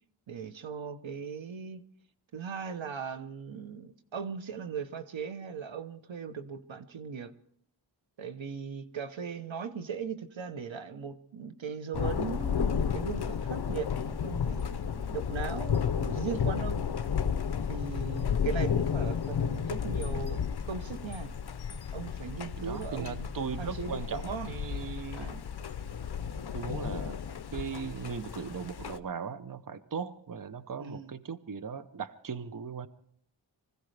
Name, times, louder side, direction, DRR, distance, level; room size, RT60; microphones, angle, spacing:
voice 1, 0.3-1.8 2.3-7.3 8.2-16.8 17.7-20.4 20.7-21.3 21.9-23.3 23.6-24.6 25.1-25.4 30.8-31.1, right 6 dB, 80° right, 10 dB, 1.0 m, -38 dB
Thunder, 11.9-29.0, left 7 dB, 55° left, 0.7 m, -32 dB
voice 2, 22.6-25.4 26.5-27.2 27.5-32.9, right 6 dB, 45° right, 12 dB, 0.7 m, -38 dB
24.5 x 15.5 x 3.3 m, 0.65 s
wide cardioid pair, 90°, 46 cm